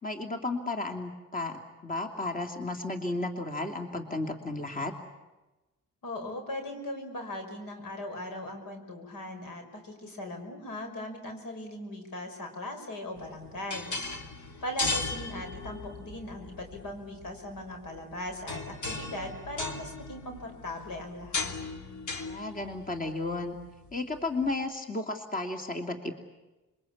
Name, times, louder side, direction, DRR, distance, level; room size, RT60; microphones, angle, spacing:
voice 1, 0.0-4.9 22.2-23.6 23.9-26.1, left 2 dB, 25° left, 4 dB, 2.8 m, -33 dB
voice 2, 6.0-13.9 14.6-21.5, left 1 dB, 80° left, 5 dB, 5.7 m, -39 dB
sound 1, 13.2-24.5, left 3 dB, 60° left, 2.8 m, -38 dB
27.0 x 23.0 x 8.7 m, 1.1 s
cardioid pair, 80°, 33 cm